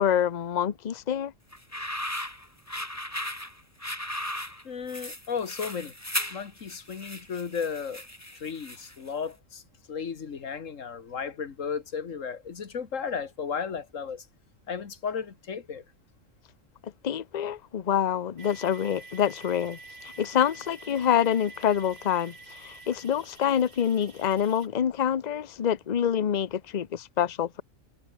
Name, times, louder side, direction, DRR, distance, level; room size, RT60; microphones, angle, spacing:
voice 1, 0.0-1.3 16.8-19.8 20.0-27.6, left 9 dB, 40° left, 0.7 m, -26 dB
sound 1, 1.5-9.1, left 1 dB, 10° left, 3.5 m, -36 dB
voice 2, 4.6-5.9 6.3-8.0 8.4-9.6 9.9-14.2 14.7-15.8, left 6 dB, 75° left, 1.9 m, -34 dB
sound 2, 18.4-24.7, right 3 dB, 50° right, 3.4 m, -48 dB
omnidirectional pair, 1.4 m